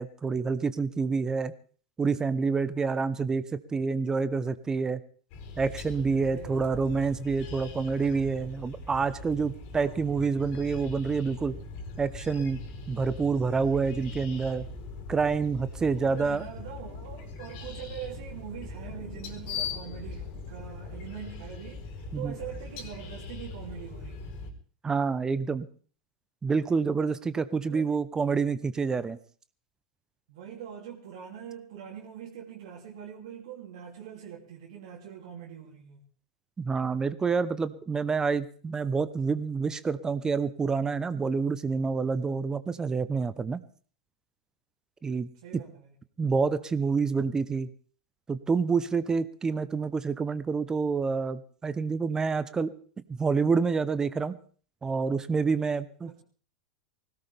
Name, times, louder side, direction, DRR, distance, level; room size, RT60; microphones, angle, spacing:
voice 1, 0.0-1.5 2.0-5.0 5.6-11.6 12.0-12.6 12.9-14.6 15.1-16.4 22.1-22.3 24.8-25.7 26.4-29.2 36.6-43.6 45.0-45.3 46.2-47.7 48.3-52.7 53.1-54.4 54.8-56.1, right 5 dB, 15° right, 0.9 m, -28 dB
sound 1, 5.3-24.5, left 4 dB, 50° left, 4.4 m, -41 dB
voice 2, 6.3-6.9 9.8-10.3 15.9-24.4 27.6-27.9 30.3-36.0 45.4-45.9 56.0-56.2, right 9 dB, 65° right, 3.0 m, -43 dB
20.5 x 17.5 x 3.5 m
hypercardioid pair, 95°, 4 cm